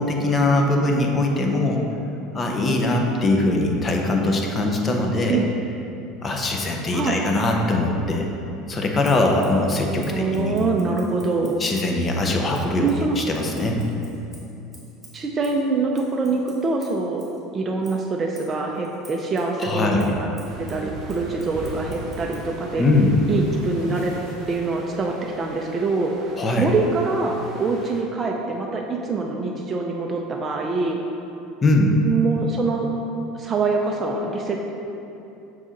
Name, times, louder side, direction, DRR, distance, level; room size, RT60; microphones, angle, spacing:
voice 1, 0.0-1.8 2.3-5.4 6.2-8.3 8.7-10.6 11.6-13.8 19.6-20.1 22.8-23.2 26.4-26.7 31.6-32.0, left 2 dB, 20° left, 1 dB, 0.6 m, -21 dB
voice 2, 6.9-7.3 10.0-11.6 12.8-13.2 15.1-17.2 17.5-20.3 20.6-22.9 23.3-26.1 26.6-31.0 32.0-32.9 33.4-34.6, right 3 dB, 25° right, 0 dB, 0.4 m, -24 dB
Scissors, 9.0-12.0 12.5-17.4 17.8-22.5, right 1 dB, 5° right, 1.4 m, -50 dB
sound 1, 20.4-28.0, right 2 dB, 40° right, 0.8 m, -41 dB
sound 2, 21.0-25.2, left 1 dB, 80° left, 1.5 m, -42 dB
6.2 x 4.1 x 3.7 m, 2.9 s
supercardioid pair, 140°, 0 cm